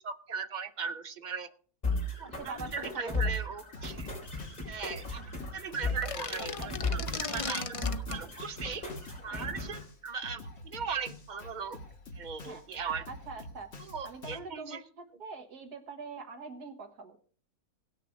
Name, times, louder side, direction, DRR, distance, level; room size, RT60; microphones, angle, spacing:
voice 1, 0.0-1.5 2.2-4.1 4.6-5.2 5.5-7.0 7.3-8.9 9.2-11.8 12.1-13.1 13.8-14.8, right 5 dB, 45° right, 0.6 m, -38 dB
sound 1, 1.8-9.8, left 2 dB, 25° left, 4.5 m, -36 dB
voice 2, 2.3-3.2 5.4-5.5 6.4-7.2 9.3-9.5 12.5-12.6 13.1-13.7 14.0-17.2, right 4 dB, 80° right, 2.1 m, -44 dB
Drum kit, 3.7-14.4, left 1 dB, 45° left, 1.8 m, -47 dB
sound 2, 5.9-8.2, left 4 dB, 60° left, 0.3 m, -37 dB
17.5 x 6.6 x 5.0 m
omnidirectional pair, 1.6 m